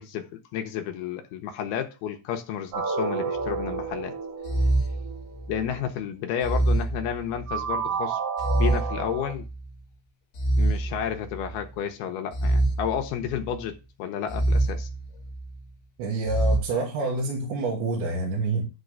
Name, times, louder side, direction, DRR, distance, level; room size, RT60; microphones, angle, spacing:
voice 1, 0.0-4.1 5.5-8.2 8.5-9.5 10.6-14.9, left 9 dB, 75° left, 2.4 m, -31 dB
sound 1, 2.7-5.7 7.5-9.3, right 6 dB, 60° right, 1.7 m, -31 dB
sound 2, 3.4-3.8 4.4-5.7 6.4-7.7 8.4-9.7 10.3-11.6 12.3-13.6 14.3-15.6 16.2-16.6, right 2 dB, 35° left, 1.6 m, -26 dB
voice 2, 16.0-18.7, right 3 dB, 75° right, 3.7 m, -27 dB
11.0 x 3.8 x 6.7 m
omnidirectional pair, 5.3 m